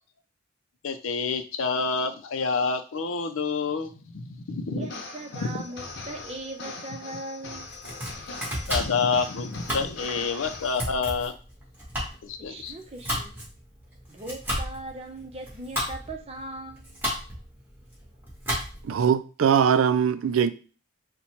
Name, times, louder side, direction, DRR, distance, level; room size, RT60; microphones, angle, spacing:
voice 1, 0.8-4.9 5.4-5.6 8.7-11.3 12.2-12.7, left 4 dB, 85° left, 0.5 m, -28 dB
voice 2, 4.7-7.7 12.4-13.4 14.1-17.0, right 2 dB, 30° right, 0.7 m, -39 dB
sound 1, 4.8-10.8, left 3 dB, 60° left, 0.8 m, -41 dB
Domestic sounds home sounds, 7.6-19.0, equal, 10° right, 1.6 m, -34 dB
voice 3, 18.8-20.5, right 7 dB, 85° right, 0.4 m, -21 dB
4.1 x 2.2 x 4.4 m
head